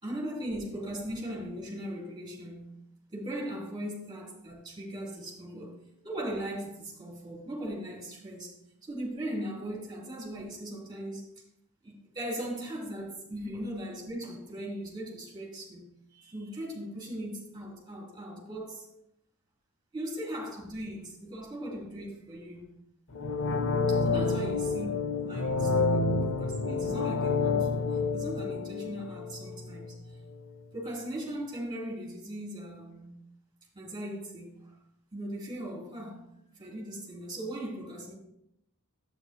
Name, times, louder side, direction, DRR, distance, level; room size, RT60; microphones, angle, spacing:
voice 1, 0.0-2.8 3.1-5.8 6.0-8.5 8.8-11.3 11.8-15.9 16.1-18.9 19.9-22.7 24.0-25.0 25.2-30.0 30.7-33.1 33.7-34.7 35.1-36.2 36.6-38.1, right 1 dB, 20° right, -3 dB, 3.2 m, -38 dB
sound 1, 23.1-30.0 30.3-30.4, left 3 dB, 60° left, 0.6 m, -29 dB
11.0 x 9.0 x 2.3 m, 0.78 s
head